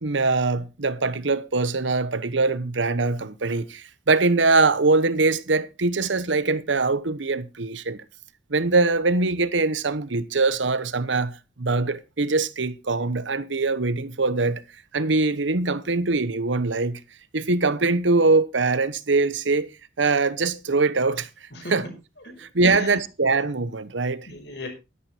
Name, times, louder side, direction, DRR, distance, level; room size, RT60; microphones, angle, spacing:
voice 1, 0.0-8.0 8.5-14.6 14.9-17.0 17.3-19.7 20.0-21.9 22.4-24.3, right 3 dB, 80° right, 1.1 m, -23 dB
voice 2, 21.5-22.3 22.6-22.9 24.3-24.7, left 1 dB, 65° left, 5.5 m, -36 dB
12.5 x 11.5 x 4.4 m
head